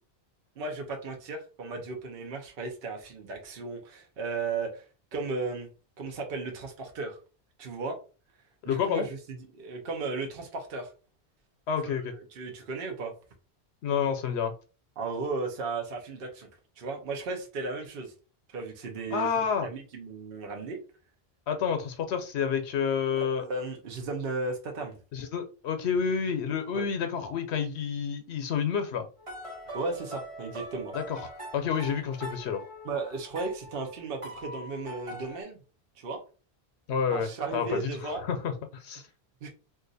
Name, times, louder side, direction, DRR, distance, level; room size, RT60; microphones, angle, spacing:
voice 1, 0.6-4.9 5.1-5.7 6.0-7.2 7.6-8.0 8.6-10.9 11.8-12.0 12.3-13.1 15.0-16.5 16.8-18.1 18.5-19.3 19.6-20.8 23.2-25.0 26.7-26.8 29.7-30.9 32.8-35.6 36.0-36.2 37.1-38.2 39.4-39.5, right 3 dB, 60° right, 2 dB, 0.9 m, -35 dB
voice 2, 8.6-9.1 11.7-12.1 13.8-14.5 19.1-19.7 21.5-23.4 25.1-29.1 30.9-31.2 31.5-32.6 36.9-39.1, left 7 dB, 85° left, 6 dB, 0.8 m, -29 dB
sound 1, 29.2-35.4, right 1 dB, 35° right, 0.9 m, -43 dB
2.6 x 2.4 x 3.9 m, 0.35 s
omnidirectional pair, 1.1 m